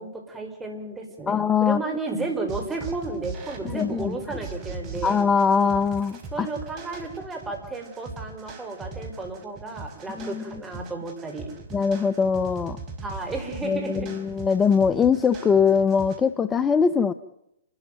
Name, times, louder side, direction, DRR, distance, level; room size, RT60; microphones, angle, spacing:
voice 1, 0.0-5.2 6.3-11.5 13.0-14.1, right 3 dB, 10° right, 3 dB, 5.1 m, -33 dB
voice 2, 1.3-1.8 3.6-4.4 5.0-6.5 10.2-10.4 11.7-12.8 13.6-17.1, left 6 dB, 15° left, 13 dB, 0.7 m, -22 dB
sound 1, 2.5-16.2, right 4 dB, 30° right, 4.4 m, -39 dB
28.5 x 13.0 x 9.3 m, 0.84 s
hypercardioid pair, 120°, 0 cm